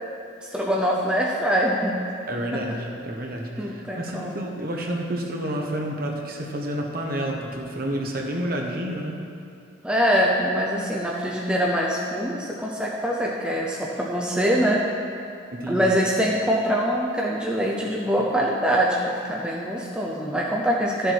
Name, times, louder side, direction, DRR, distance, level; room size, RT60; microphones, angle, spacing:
voice 1, 0.4-2.0 3.6-4.5 9.8-14.8 15.7-21.1, equal, 5° right, -3 dB, 0.6 m, -24 dB
voice 2, 2.3-9.2 15.5-15.9, right 1 dB, 45° right, 0 dB, 1.1 m, -29 dB
12.0 x 6.9 x 4.7 m, 2.5 s
head